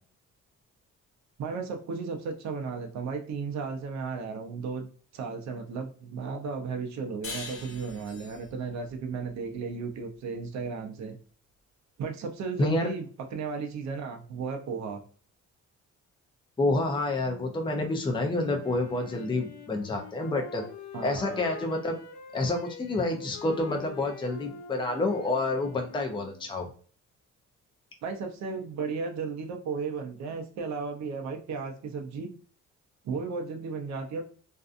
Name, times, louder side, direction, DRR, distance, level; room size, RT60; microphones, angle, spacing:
voice 1, 1.4-11.2 12.0-15.0 20.9-21.4 28.0-32.3 33.0-34.2, right 5 dB, 65° right, 4 dB, 0.6 m, -34 dB
sound 1, 7.2-10.4, left 3 dB, 45° left, 0.8 m, -43 dB
voice 2, 16.6-20.6 21.0-22.0 22.3-26.7, left 2 dB, 15° left, 2 dB, 0.5 m, -28 dB
Wind instrument woodwind instrument, 18.6-26.6, left 4 dB, 80° left, 0.7 m, -45 dB
2.6 x 2.3 x 2.5 m, 0.42 s
cardioid pair, 90°, 30 cm